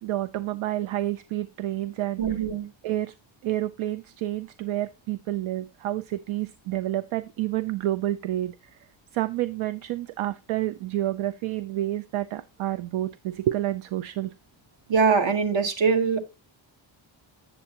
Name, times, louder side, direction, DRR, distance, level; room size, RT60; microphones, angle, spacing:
voice 1, 0.0-2.2 2.8-3.1 3.4-8.8 9.1-14.3, right 14 dB, 85° right, 0.5 m, -29 dB
voice 2, 2.2-2.7 14.9-16.2, right 5 dB, 65° right, 1.4 m, -22 dB
8.3 x 7.0 x 2.8 m
cardioid pair, 95°, 48 cm